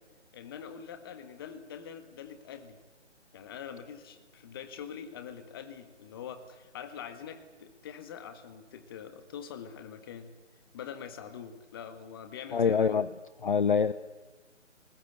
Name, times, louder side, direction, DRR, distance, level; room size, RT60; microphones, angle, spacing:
voice 1, 0.3-2.8 3.3-10.3 10.7-13.1, left 8 dB, 20° left, 10 dB, 1.6 m, -44 dB
voice 2, 12.5-13.1 13.4-13.9, left 6 dB, 45° left, 15 dB, 0.7 m, -25 dB
29.5 x 20.0 x 8.2 m, 1.3 s
figure-of-eight pair, 150°, 36 cm